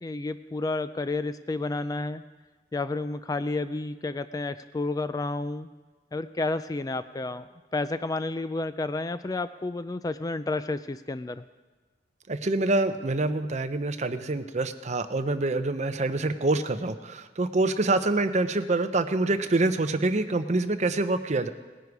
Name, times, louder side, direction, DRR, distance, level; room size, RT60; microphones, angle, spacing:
voice 1, 0.0-2.2 2.7-5.7 6.1-7.4 7.7-11.4, left 2 dB, 20° left, 12 dB, 0.3 m, -31 dB
voice 2, 12.3-21.5, right 2 dB, 40° right, 10 dB, 0.6 m, -26 dB
18.5 x 10.0 x 4.7 m, 1.3 s
head